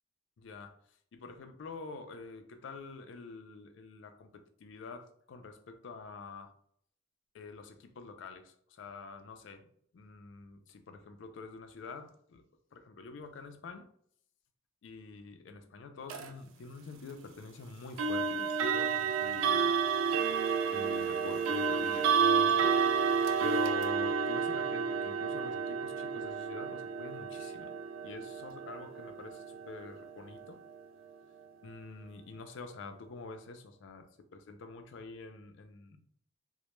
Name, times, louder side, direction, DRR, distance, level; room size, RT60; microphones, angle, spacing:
voice 1, 0.4-0.8 1.1-6.5 7.3-12.4 12.7-13.9 14.8-19.8 20.7-22.7 23.4-27.7 28.0-30.6 31.6-36.0, left 3 dB, 65° left, 7 dB, 0.4 m, -47 dB
sound 1, 16.1-16.3 18.0-30.8, right 6 dB, 80° right, 0.3 m, -31 dB
2.1 x 2.0 x 3.0 m, 0.62 s
head